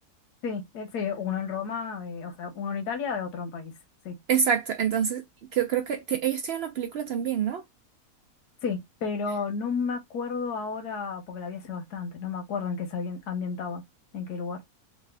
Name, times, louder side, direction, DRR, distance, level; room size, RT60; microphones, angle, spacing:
voice 1, 0.4-3.7 4.0-4.2 8.6-13.8 14.1-14.6, left 5 dB, 90° left, 1.4 m, -32 dB
voice 2, 4.3-5.2 5.5-7.6, right 8 dB, 80° right, 0.5 m, -26 dB
3.2 x 2.5 x 3.2 m
omnidirectional pair, 1.7 m